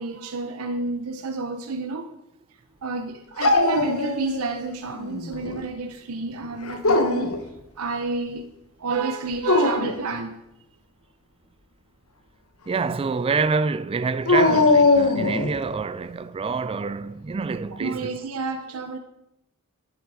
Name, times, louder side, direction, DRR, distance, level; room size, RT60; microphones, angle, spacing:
voice 1, 0.0-2.1 2.8-8.5 8.8-10.4 17.7-19.0, right 3 dB, 80° right, 0.7 m, -30 dB
Dog, 3.4-4.6 4.9-5.6 6.6-7.4 9.3-10.0 14.3-15.6, left 3 dB, 70° left, 1.0 m, -20 dB
voice 2, 12.7-18.1, right 4 dB, 25° right, 0.3 m, -27 dB
11.5 x 7.9 x 4.8 m
head